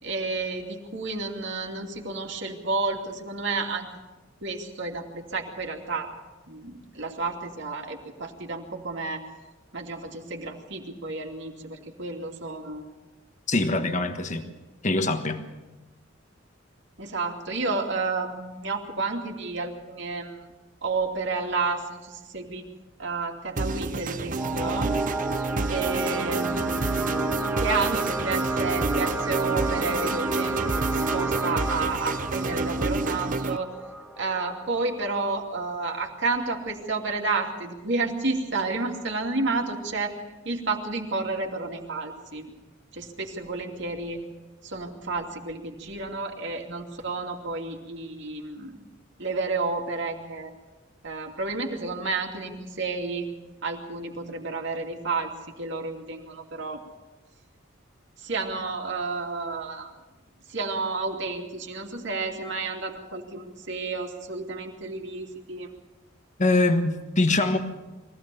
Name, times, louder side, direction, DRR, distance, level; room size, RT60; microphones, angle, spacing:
voice 1, 0.0-3.9 4.4-6.1 6.5-9.2 9.7-12.8 17.0-20.5 20.8-22.6 23.0-24.9 25.7-27.2 27.6-30.6 30.9-33.7 34.2-40.2 40.4-42.5 42.9-44.2 44.6-48.8 49.2-50.5 51.0-53.3 53.6-55.3 55.6-56.8 58.2-59.9 60.5-65.7, right 3 dB, 65° right, 2 dB, 2.7 m, -31 dB
voice 2, 13.5-14.5 14.8-15.4 66.4-67.6, left 2 dB, 40° left, 7 dB, 1.4 m, -23 dB
sound 1, 23.6-33.6, right 3 dB, 45° right, 0.7 m, -29 dB
sound 2, 24.4-35.4, right 2 dB, 5° right, 1.5 m, -32 dB
23.0 x 16.5 x 7.0 m, 1.1 s
head